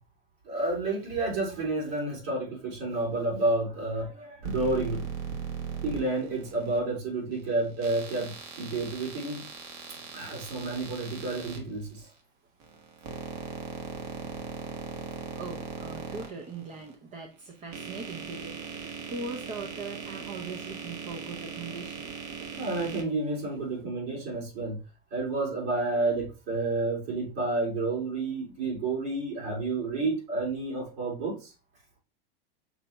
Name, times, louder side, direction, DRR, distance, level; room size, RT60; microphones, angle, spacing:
voice 1, 0.4-5.0 5.8-9.4 9.9-12.1 22.6-24.8 25.1-31.5, right 2 dB, 70° right, -4 dB, 2.5 m, -30 dB
sound 1, 4.4-6.8 7.8-11.6 12.6-16.9 17.5-23.0, right 6 dB, 50° right, 1.1 m, -39 dB
voice 2, 15.4-22.1, right 3 dB, 25° right, 3 dB, 0.5 m, -40 dB
5.9 x 2.2 x 3.9 m, 0.32 s
supercardioid pair, 135°, 29 cm